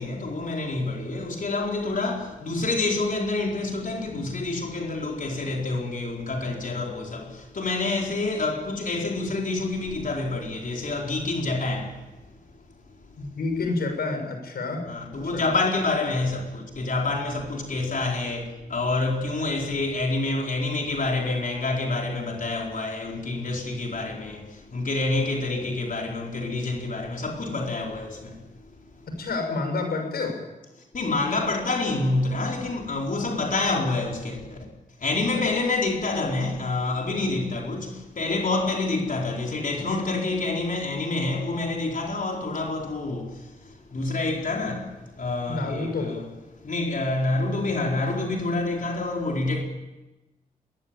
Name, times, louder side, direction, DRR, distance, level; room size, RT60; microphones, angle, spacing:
voice 1, 0.0-12.0 14.9-28.4 30.9-34.7 35.0-46.3 46.6-49.6, left 2 dB, 60° left, 4.5 m, -27 dB
voice 2, 13.2-14.8 15.1-15.5 29.1-30.4 35.3-35.4 45.5-46.1, left 3 dB, 85° left, 6.5 m, -29 dB
20.5 x 19.5 x 9.1 m
cardioid pair, 60°, 16 cm